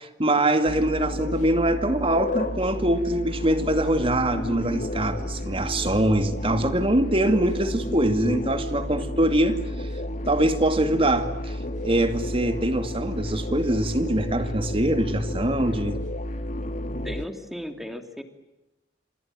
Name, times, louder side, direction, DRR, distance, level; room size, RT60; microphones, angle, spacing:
voice 1, 0.0-9.9 10.3-11.6 11.8-16.0, right 1 dB, 35° right, 9 dB, 2.4 m, -23 dB
sound 1, 0.7-17.3, left 1 dB, 45° left, 2.4 m, -31 dB
voice 2, 17.0-18.2, equal, ahead, 7 dB, 2.9 m, -35 dB
28.0 x 27.0 x 7.6 m, 0.93 s
head